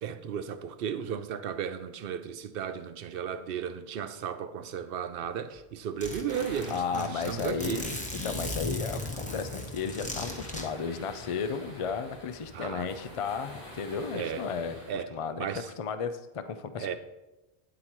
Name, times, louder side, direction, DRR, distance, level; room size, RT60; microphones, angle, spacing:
voice 1, 0.0-7.8 12.5-12.9 14.1-14.4 14.9-15.1 15.4-15.7 16.8-16.9, right 8 dB, 70° right, 0.7 m, -35 dB
Zipper (clothing), 5.2-5.3 5.6-5.7 6.0-10.6, left 1 dB, 10° left, 0.9 m, -37 dB
sound 1, 6.3-14.9, equal, 90° left, 3.6 m, -48 dB
voice 2, 6.7-7.9 8.2-15.5 15.8-16.9, left 6 dB, 50° left, 0.4 m, -34 dB
9.4 x 7.7 x 3.0 m
omnidirectional pair, 1.1 m